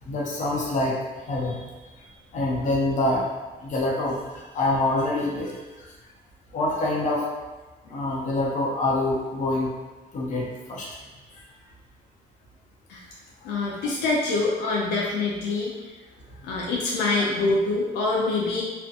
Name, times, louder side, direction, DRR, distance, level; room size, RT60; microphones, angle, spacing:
voice 1, 0.0-3.3 3.6-5.9 6.5-7.3 7.8-9.7 10.1-11.0 11.3-11.4 16.4-16.5, left 2 dB, 45° left, -4 dB, 0.7 m, -26 dB
voice 2, 13.4-15.9 16.4-18.6, left 3 dB, 80° left, -3 dB, 0.5 m, -25 dB
2.4 x 2.1 x 2.7 m, 1.2 s
cardioid pair, 110°, 17 cm